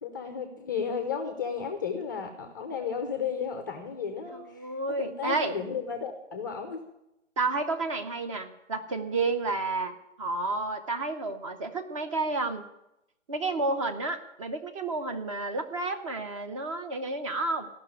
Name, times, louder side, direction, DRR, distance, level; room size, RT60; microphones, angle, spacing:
voice 1, 0.0-4.7 5.0-6.8, left 6 dB, 15° left, 5 dB, 0.5 m, -33 dB
voice 2, 4.3-5.5 7.4-12.6 13.3-17.7, right 3 dB, 25° right, 7 dB, 0.8 m, -31 dB
14.5 x 6.0 x 9.6 m, 0.88 s
figure-of-eight pair, 145°, 38 cm